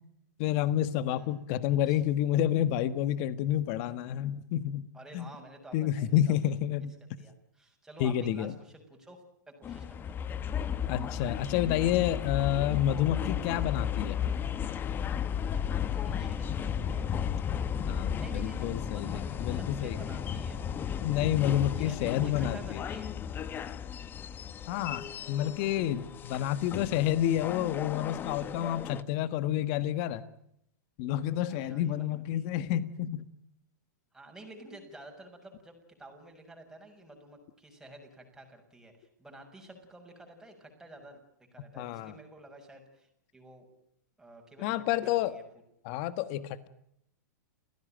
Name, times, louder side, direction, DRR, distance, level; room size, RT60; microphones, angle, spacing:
voice 1, 0.4-4.8 5.1-5.3 5.7-6.9 8.0-8.5 10.9-14.2 17.9-20.0 21.0-22.8 24.7-30.2 31.0-33.2 41.8-42.1 44.6-45.3 45.8-46.7, left 11 dB, 45° left, 14 dB, 1.5 m, -29 dB
voice 2, 1.1-1.4 1.9-2.0 4.9-6.8 7.2-10.2 15.5-17.1 18.2-20.6 21.8-23.1 31.5-32.5 34.1-41.2 41.5-43.7 44.2-45.4, right 1 dB, 5° right, 2 dB, 6.5 m, -51 dB
sound 1, 9.6-29.0, left 8 dB, 20° left, 1.0 m, -34 dB
29.0 x 16.5 x 9.1 m, 0.76 s
hypercardioid pair, 135°, 10 cm